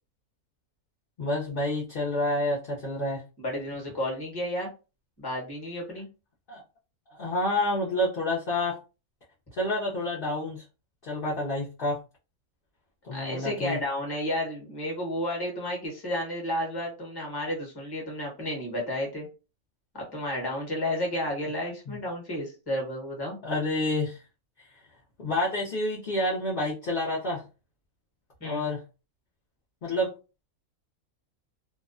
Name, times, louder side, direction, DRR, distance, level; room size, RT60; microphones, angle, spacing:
voice 1, 1.2-3.2 6.5-6.6 7.1-8.8 9.5-10.6 11.0-12.0 13.0-13.8 21.9-22.0 23.4-24.2 24.6-24.7 25.2-27.4 28.4-28.8 29.8-30.1, left 1 dB, 50° left, -5 dB, 0.7 m, -28 dB
voice 2, 3.4-4.7 5.2-6.1 13.1-19.3 19.9-23.4 28.4-28.7, left 1 dB, 20° left, -1 dB, 0.9 m, -32 dB
2.6 x 2.1 x 2.4 m, 0.31 s
omnidirectional pair, 1.5 m